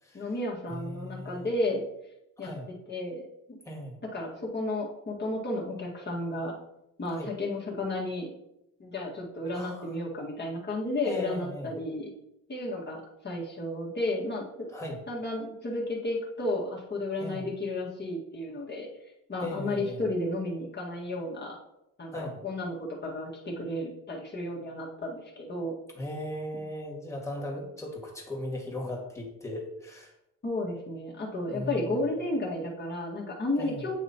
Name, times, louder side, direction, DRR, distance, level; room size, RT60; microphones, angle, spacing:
voice 1, 0.1-1.8 2.4-2.5 2.9-3.6 4.1-6.5 7.0-8.3 8.8-12.1 12.5-14.5 15.1-18.9 19.3-21.6 22.0-22.8 23.0-25.7 26.5-26.6 30.4-33.9, left 1 dB, 30° left, -3 dB, 1.8 m, -32 dB
voice 2, 0.7-1.5 2.4-2.7 3.6-4.0 7.1-7.3 9.5-9.9 11.0-11.7 14.7-15.0 17.2-17.4 19.4-20.0 22.1-22.3 25.9-30.1 31.5-31.9 33.5-33.8, left 1 dB, 10° left, -2 dB, 2.0 m, -37 dB
9.0 x 3.1 x 4.3 m, 0.84 s
cardioid pair, 100°, 35 cm